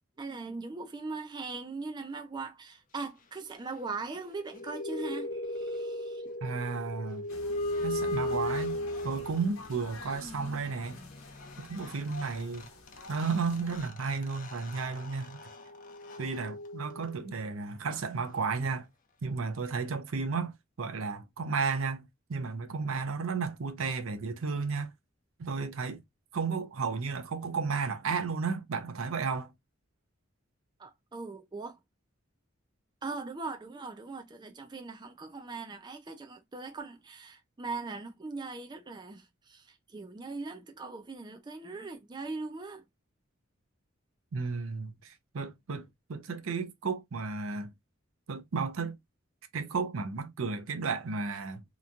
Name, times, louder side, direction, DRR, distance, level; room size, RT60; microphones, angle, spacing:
voice 1, 0.2-6.3 30.8-31.8 33.0-42.8, right 3 dB, 20° right, 0.4 m, -40 dB
sound 1, 4.3-9.7 11.6-11.7 11.8-17.3, left 1 dB, 40° left, 0.6 m, -37 dB
voice 2, 6.4-7.3 7.8-11.0 11.6-12.7 13.1-15.4 16.2-18.9 19.2-20.5 20.8-24.9 25.4-26.0 26.3-29.5 44.3-47.7 48.3-49.0 49.5-51.6, right 4 dB, 80° right, 0.6 m, -33 dB
sound 2, 7.3-13.8, left 2 dB, 85° left, 0.9 m, -47 dB
2.9 x 2.2 x 2.4 m
head